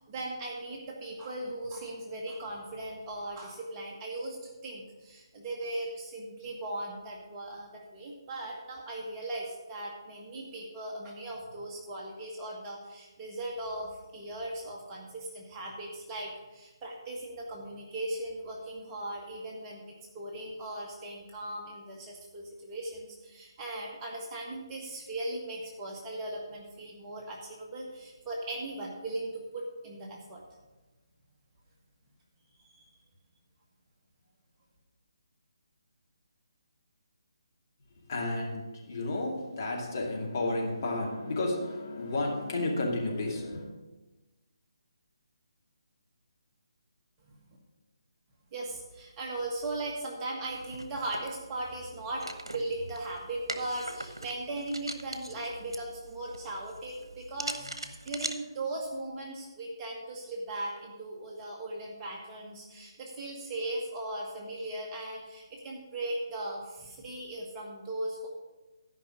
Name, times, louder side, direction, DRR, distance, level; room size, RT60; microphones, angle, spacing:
voice 1, 0.1-30.4 32.7-32.8 47.2-47.6 48.5-68.3, right 1 dB, 20° right, -2 dB, 1.5 m, -38 dB
voice 2, 38.1-43.7, left 2 dB, 40° left, -2 dB, 2.4 m, -32 dB
sound 1, 50.4-58.3, right 1 dB, 75° right, 1.0 m, -42 dB
13.0 x 5.5 x 6.3 m, 1.1 s
figure-of-eight pair, 145°, 3 cm